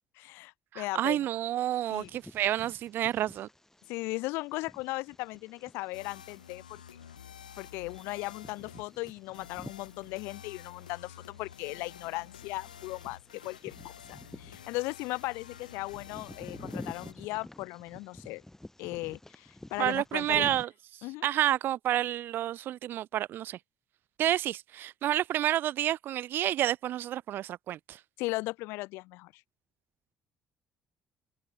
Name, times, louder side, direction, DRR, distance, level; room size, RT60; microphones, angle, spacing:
voice 1, 0.2-1.3 1.9-2.1 3.9-6.8 7.6-18.4 18.8-20.5 21.0-21.3 28.2-29.4, left 22 dB, 65° left, 0.9 m, -37 dB
voice 2, 0.7-3.5 19.8-20.7 21.2-23.6 24.2-28.0, right 12 dB, 55° right, 0.4 m, -29 dB
Bird vocalization bird call bird song, 1.7-20.6, left 1 dB, 10° left, 5.4 m, -50 dB
cool song, 5.9-17.1, left 9 dB, 85° left, 6.2 m, -50 dB
open air
figure-of-eight pair, 50°, 4 cm